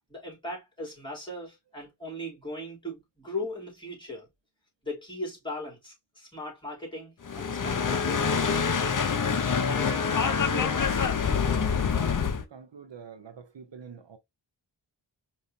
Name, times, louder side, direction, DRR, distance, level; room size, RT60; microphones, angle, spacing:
voice 1, 0.1-4.3 4.8-9.1 9.7-11.5, left 1 dB, 10° left, 3.1 m, -39 dB
sound 1, 7.2-12.4, left 6 dB, 45° left, 0.7 m, -26 dB
voice 2, 11.9-14.2, right 6 dB, 70° right, 0.9 m, -46 dB
5.1 x 3.0 x 2.7 m
wide cardioid pair, 75°, 45 cm